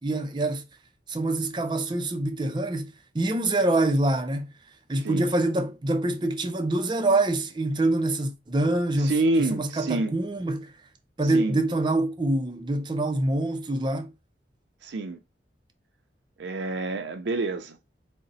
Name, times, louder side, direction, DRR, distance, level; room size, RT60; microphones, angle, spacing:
voice 1, 0.0-0.6 1.1-4.5 4.9-10.7 11.2-14.1, right 2 dB, 25° right, 0.5 m, -25 dB
voice 2, 9.0-10.1 11.2-11.6 14.8-15.2 16.4-17.8, right 2 dB, 80° right, 0.5 m, -27 dB
3.9 x 2.1 x 3.9 m
head